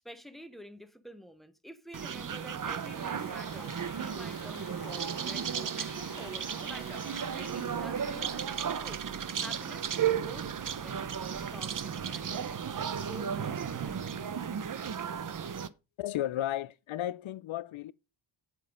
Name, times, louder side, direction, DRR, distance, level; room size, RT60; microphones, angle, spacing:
voice 1, 0.0-9.0 9.4-12.5 12.8-14.1, equal, ahead, 1.1 m, -49 dB
sound 1, 1.9-15.7, right 8 dB, 45° right, 0.8 m, -34 dB
Applause, 2.5-9.7, left 6 dB, 45° left, 1.4 m, -52 dB
voice 2, 16.0-17.9, left 13 dB, 85° left, 0.7 m, -34 dB
7.9 x 7.4 x 5.1 m
cardioid pair, 85°, 47 cm